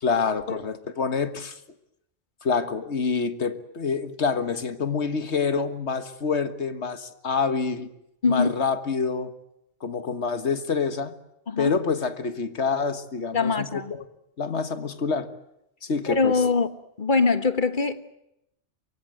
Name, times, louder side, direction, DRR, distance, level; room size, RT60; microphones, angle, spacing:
voice 1, 0.0-1.6 2.4-7.9 8.3-9.3 9.8-11.1 11.6-14.1 14.4-15.3 15.8-16.4, left 5 dB, 80° left, 1.9 m, -27 dB
voice 2, 11.5-11.8 13.3-13.9 16.1-16.7 17.0-18.1, left 4 dB, 45° left, 1.6 m, -23 dB
24.0 x 23.5 x 7.9 m
omnidirectional pair, 1.1 m